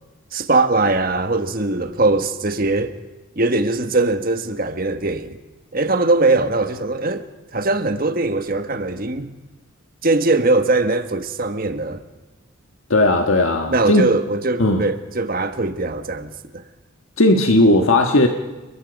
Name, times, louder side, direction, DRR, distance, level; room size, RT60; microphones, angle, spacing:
voice 1, 0.3-2.9 3.3-5.4 5.7-7.2 7.5-9.3 10.0-12.0 13.7-16.6, right 2 dB, 40° right, 1.5 m, -21 dB
voice 2, 12.9-14.0 14.6-14.9 17.2-18.3, left 1 dB, 75° left, 1.5 m, -16 dB
29.5 x 21.0 x 5.3 m
head